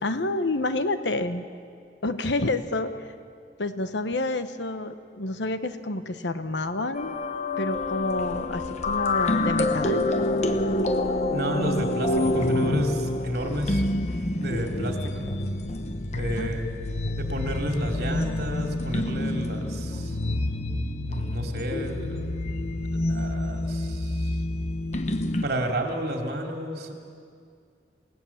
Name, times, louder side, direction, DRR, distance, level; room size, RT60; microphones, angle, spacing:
voice 1, 0.0-1.5 2.0-2.9 3.6-7.2 7.6-10.0 12.2-12.8 16.4-16.5, left 2 dB, 85° left, 10 dB, 1.1 m, -28 dB
sound 1, 6.9-25.5, left 2 dB, 40° left, 1.0 m, -27 dB
voice 2, 11.3-12.9 13.2-13.8 14.3-15.1 16.2-16.7 17.2-20.2 21.0-22.3 22.9-24.4 25.4-26.9, right 1 dB, 60° right, 2 dB, 2.8 m, -31 dB
27.5 x 18.0 x 7.2 m, 2.3 s
head